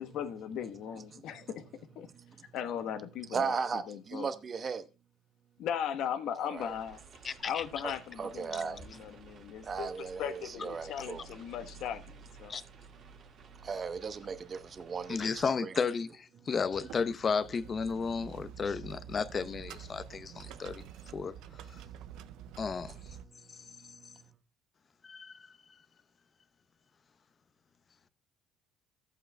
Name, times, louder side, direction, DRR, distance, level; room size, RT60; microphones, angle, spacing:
voice 1, 0.0-1.7 1.9-2.1 2.5-4.3 5.6-7.0 7.4-12.5, left 9 dB, 70° left, 1.1 m, -38 dB
voice 2, 3.3-4.9 6.4-6.7 8.2-8.8 9.6-11.3 13.5-15.7 18.4-18.5 20.3-21.3 21.6-22.6 23.2-24.3, right 5 dB, 35° right, 0.9 m, -38 dB
Inside a car in the rain, 6.6-15.5, right 5 dB, 55° right, 1.7 m, -54 dB
voice 3, 7.2-7.6 12.5-12.6 15.1-21.3 22.6-22.9 25.0-25.4, left 5 dB, 35° left, 0.7 m, -33 dB
Rolling Hospital Bed, 16.7-23.2, right 9 dB, 80° right, 0.4 m, -48 dB
14.5 x 8.2 x 2.2 m
cardioid pair, 115°, 0 cm